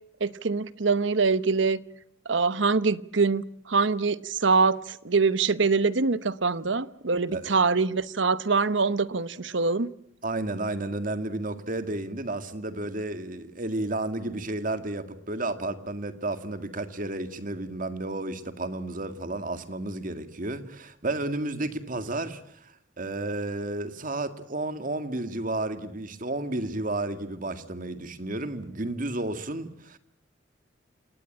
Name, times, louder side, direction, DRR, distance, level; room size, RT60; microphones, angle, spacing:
voice 1, 0.2-1.8 2.2-9.9, right 4 dB, 70° right, 1.0 m, -24 dB
voice 2, 10.2-30.0, right 2 dB, 45° right, 2.0 m, -32 dB
28.5 x 18.5 x 8.8 m
head